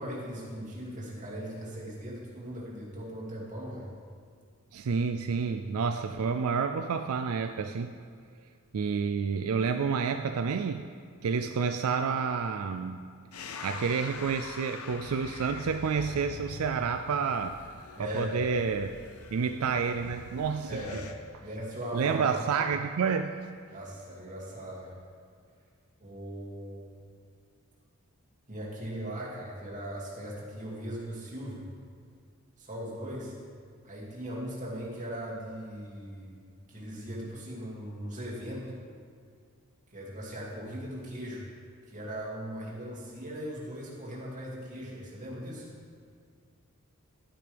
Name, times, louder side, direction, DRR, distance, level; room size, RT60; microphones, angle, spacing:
voice 1, 0.0-3.9 18.0-18.3 20.7-21.0 21.4-22.4 23.7-24.9 26.0-26.9 28.5-31.6 32.6-33.3 33.8-36.4 36.7-38.8 39.9-41.5 41.9-45.7, equal, 35° right, -5 dB, 2.5 m, -39 dB
voice 2, 4.7-7.9 8.7-10.8 11.2-13.0 13.6-17.6 18.0-18.9 19.3-20.8 21.9-23.3, right 5 dB, 80° right, 7 dB, 0.4 m, -29 dB
sound 1, 13.3-21.1, left 4 dB, 85° left, 0.7 m, -44 dB
11.5 x 10.0 x 3.4 m, 2.2 s
head